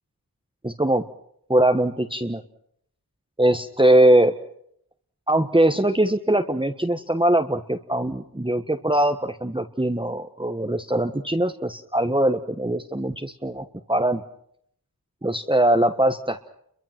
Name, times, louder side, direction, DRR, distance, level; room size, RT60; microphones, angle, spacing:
voice 1, 0.6-1.0 1.5-2.4 3.4-4.3 5.3-14.2 15.2-16.4, right 1 dB, 15° right, 4 dB, 1.3 m, -21 dB
29.5 x 23.5 x 6.0 m, 0.70 s
wide cardioid pair, 55°, 38 cm